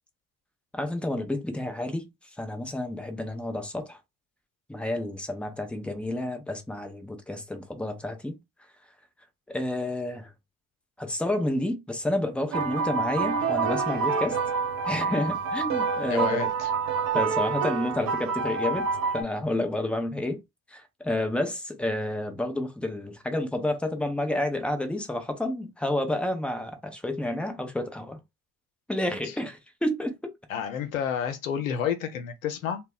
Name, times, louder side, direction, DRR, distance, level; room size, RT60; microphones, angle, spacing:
voice 1, 0.7-2.1 2.4-4.0 4.7-8.4 9.5-10.3 11.0-14.4 14.9-16.5 17.1-18.9 19.1-20.4 20.7-28.2 28.9-30.3, left 1 dB, 5° left, 0.7 m, -30 dB
sound 1, 12.5-19.2, right 5 dB, 60° right, 0.8 m, -27 dB
voice 2, 16.1-16.7 29.2-29.3 30.5-32.8, left 8 dB, 90° left, 0.5 m, -30 dB
2.1 x 2.1 x 3.7 m
hypercardioid pair, 50°, 39 cm